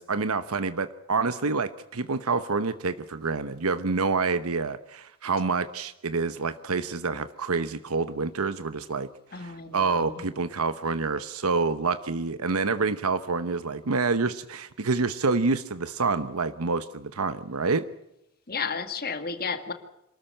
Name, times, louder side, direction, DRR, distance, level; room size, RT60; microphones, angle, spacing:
voice 1, 0.0-17.8, right 4 dB, 85° right, 12 dB, 1.0 m, -27 dB
voice 2, 9.3-10.2 18.5-19.7, left 5 dB, 45° left, 8 dB, 2.1 m, -33 dB
27.0 x 13.5 x 8.9 m, 0.87 s
head